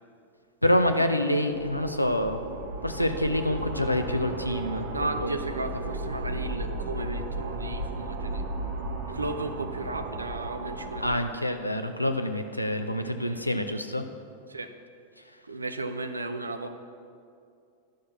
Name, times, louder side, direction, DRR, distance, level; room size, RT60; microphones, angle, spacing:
voice 1, 0.6-2.4 2.8-4.9 5.2-5.4 11.0-14.1, left 1 dB, 85° left, 7 dB, 0.7 m, -26 dB
sound 1, 1.5-11.2, right 2 dB, 55° right, 1.1 m, -35 dB
voice 2, 4.9-8.5 9.1-11.3 13.0-13.5 14.5-14.7 15.4-16.7, right 2 dB, 80° right, 9 dB, 0.7 m, -35 dB
11.5 x 6.5 x 7.0 m, 2.4 s
figure-of-eight pair, 90°, 0 cm